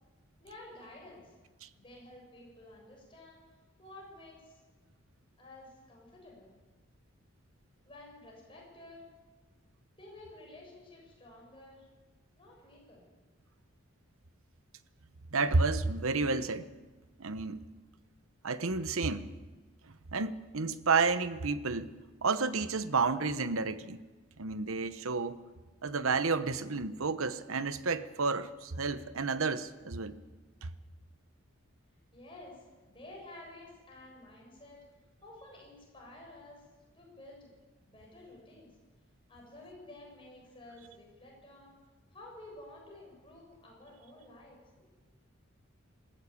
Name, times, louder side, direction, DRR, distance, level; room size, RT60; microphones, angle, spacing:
voice 1, 0.4-1.4 1.8-3.4 3.8-4.6 5.4-6.5 7.9-9.1 10.0-11.9 12.4-13.0 32.1-34.9 35.2-36.6 36.9-37.5 37.9-38.8 39.3-41.8 42.1-44.6, left 2 dB, 25° left, 7.5 m, -52 dB
voice 2, 15.3-16.7 17.2-17.6 18.4-19.3 20.1-21.9 22.2-24.0 24.4-25.4 25.8-30.2 30.6-30.7, right 4 dB, 75° right, 1.0 m, -31 dB
20.5 x 15.5 x 8.5 m
head